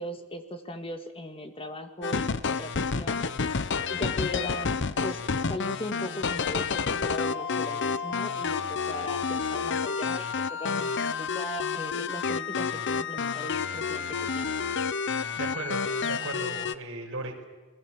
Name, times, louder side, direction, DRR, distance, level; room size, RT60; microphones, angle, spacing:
voice 1, 0.0-3.2 3.9-5.2 5.5-14.5, left 1 dB, 25° left, 7 dB, 2.0 m, -38 dB
sound 1, 2.0-16.7, left 5 dB, 55° left, 0.9 m, -29 dB
voice 2, 15.4-17.4, right 2 dB, 65° right, 1 dB, 5.2 m, -36 dB
28.5 x 21.0 x 7.4 m, 1.2 s
head